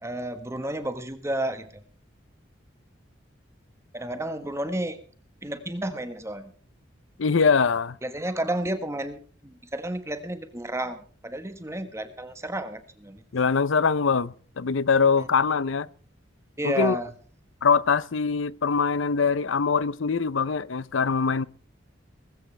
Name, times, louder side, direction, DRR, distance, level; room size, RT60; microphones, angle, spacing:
voice 1, 0.0-1.8 3.9-5.0 5.4-6.5 8.0-11.0 11.2-13.2 15.2-15.3 16.6-17.1, right 1 dB, 15° right, 1.4 m, -31 dB
voice 2, 7.2-8.0 13.3-15.9 16.6-17.0 17.6-21.5, left 5 dB, 80° left, 0.6 m, -23 dB
20.0 x 15.0 x 3.4 m
head